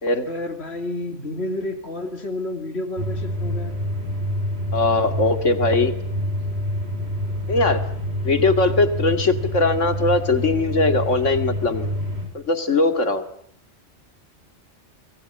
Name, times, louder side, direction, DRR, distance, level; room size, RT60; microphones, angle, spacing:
voice 1, 0.3-3.8, left 2 dB, 60° left, 6 dB, 3.3 m, -30 dB
sound 1, 3.0-12.3, equal, 60° right, 6.0 m, -27 dB
voice 2, 4.7-5.9 7.5-7.9 8.2-11.9 12.3-13.2, left 3 dB, 85° left, 9 dB, 2.6 m, -20 dB
25.5 x 19.5 x 9.7 m, 0.63 s
omnidirectional pair, 1.2 m